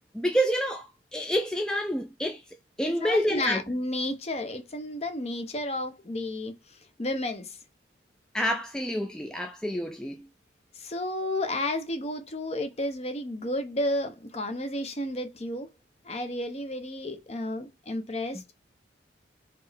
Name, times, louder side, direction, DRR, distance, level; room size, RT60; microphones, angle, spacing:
voice 1, 0.1-2.4 2.8-3.6 8.3-10.2, equal, 5° left, 0.3 m, -28 dB
voice 2, 2.8-7.6 10.7-15.7 16.0-18.5, left 1 dB, 35° left, 0.7 m, -32 dB
4.3 x 3.1 x 3.3 m
head